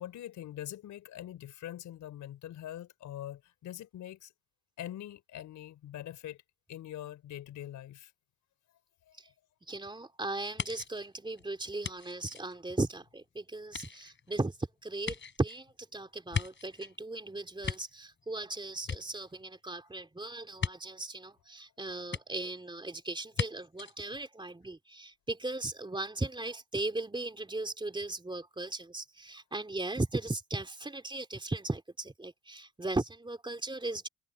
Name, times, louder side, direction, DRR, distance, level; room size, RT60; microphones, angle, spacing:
voice 1, 0.0-4.3 4.8-6.4 6.7-8.1 9.1-9.2, left 12 dB, 80° left, 4.9 m, -43 dB
voice 2, 9.7-14.6 14.8-34.1, right 2 dB, 15° right, 3.4 m, -37 dB
sound 1, 10.6-13.2 13.6-17.0 17.4-18.5 18.8-19.7 20.6-20.7 22.1-22.2 23.3-23.5 23.8-23.9, left 5 dB, 40° left, 4.7 m, -38 dB
cardioid pair, 90°, 30 cm